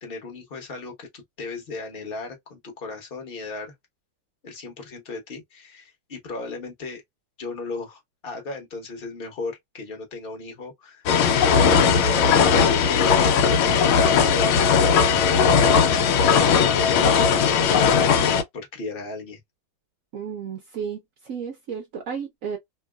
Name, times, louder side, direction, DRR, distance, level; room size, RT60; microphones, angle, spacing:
voice 1, 0.0-3.7 4.4-7.0 7.4-11.0 11.7-19.4, left 3 dB, 35° left, 1.0 m, -36 dB
sound 1, 11.1-18.4, left 6 dB, 85° left, 1.4 m, -18 dB
voice 2, 20.1-22.6, right 7 dB, 75° right, 0.7 m, -33 dB
3.0 x 2.7 x 2.2 m
omnidirectional pair, 2.2 m